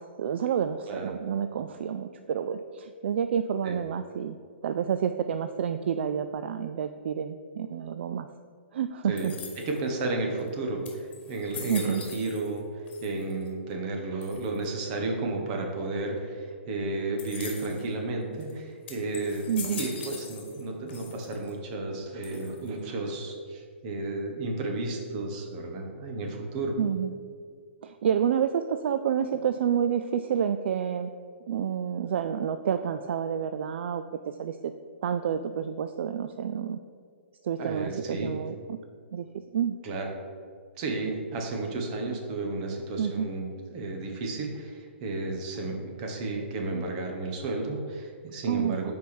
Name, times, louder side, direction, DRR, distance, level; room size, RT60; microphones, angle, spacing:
voice 1, 0.0-4.4 4.6-8.3 8.7-9.3 11.7-12.0 19.5-19.8 26.8-27.1 27.8-31.1 31.5-34.7 35.0-36.8 37.4-38.8 39.1-39.3 39.5-39.8 43.0-43.3 48.5-48.9, right 8 dB, 65° right, 9 dB, 0.3 m, -29 dB
voice 2, 9.1-26.8 37.6-38.3 39.8-40.1 40.8-48.9, right 2 dB, 40° right, 2 dB, 1.3 m, -32 dB
sound 1, 9.2-9.9 10.5-10.6 10.8-12.6 12.9-13.5 14.2-14.7 17.2-17.9 18.4-18.5 18.9-20.6 20.9-21.5 22.2-22.8, left 6 dB, 50° left, 1.6 m, -42 dB
5.7 x 4.7 x 6.2 m, 2.1 s
hypercardioid pair, 145°, 7 cm